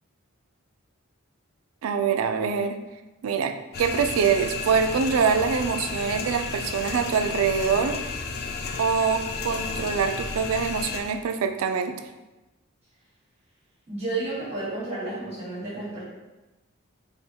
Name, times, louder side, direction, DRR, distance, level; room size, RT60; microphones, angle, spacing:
voice 1, 1.8-2.8 3.2-8.0 8.8-12.0, right 6 dB, 80° right, 7 dB, 0.3 m, -24 dB
sound 1, 3.7-11.0, left 4 dB, 50° left, 0.3 m, -32 dB
voice 2, 13.9-16.0, right 2 dB, 30° right, -9 dB, 1.4 m, -31 dB
3.4 x 2.2 x 4.3 m, 1.1 s
head